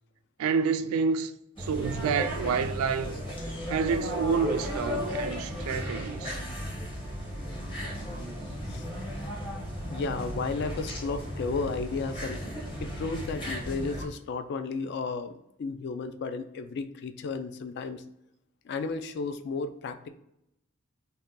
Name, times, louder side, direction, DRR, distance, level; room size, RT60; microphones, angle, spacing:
voice 1, 0.4-3.2 3.7-6.4, right 5 dB, 85° right, 0.3 m, -29 dB
sound 1, 1.6-14.1, equal, 25° left, 0.8 m, -35 dB
voice 2, 9.9-12.4 12.8-15.3 15.6-18.0 18.7-20.1, left 4 dB, 55° left, 0.3 m, -33 dB
2.7 x 2.2 x 3.6 m
head